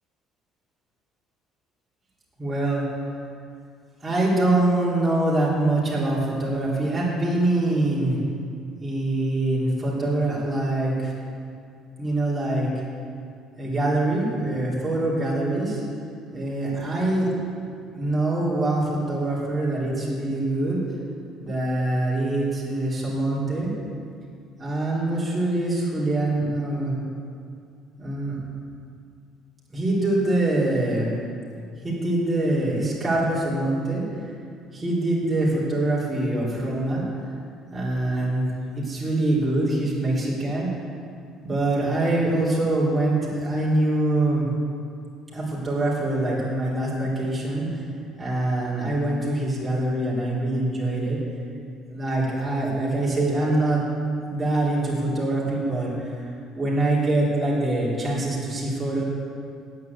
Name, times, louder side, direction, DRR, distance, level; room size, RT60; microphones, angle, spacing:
voice 1, 2.4-2.8 4.0-8.2 8.8-11.1 12.0-12.7 13.6-15.8 16.3-17.3 17.9-20.8 21.4-23.7 24.6-26.9 28.0-28.4 29.7-31.1 31.8-34.3 34.7-37.1 37.7-38.5 38.7-40.7 41.4-44.5 45.3-47.8 48.2-51.2 51.9-53.8 54.3-56.3 56.5-59.0, right 2 dB, 15° right, -7 dB, 3.1 m, -24 dB
9.5 x 7.9 x 8.2 m, 2.4 s
cardioid pair, 135°, 0 cm